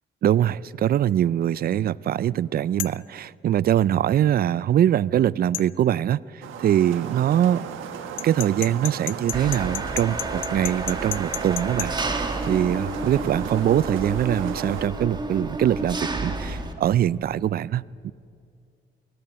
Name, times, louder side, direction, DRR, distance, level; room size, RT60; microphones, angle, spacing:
voice 1, 0.2-7.6 8.2-18.1, right 11 dB, 50° right, 21 dB, 0.4 m, -23 dB
sound 1, 2.8-3.0 5.5-5.7 8.2-11.9, left 17 dB, 85° left, 0.5 m, -32 dB
sound 2, 6.4-14.9, right 8 dB, 90° right, 1.4 m, -36 dB
Engine, 9.3-16.7, right 2 dB, 20° right, 1.7 m, -30 dB
18.0 x 16.5 x 9.1 m, 2.4 s
cardioid pair, 90°, 20 cm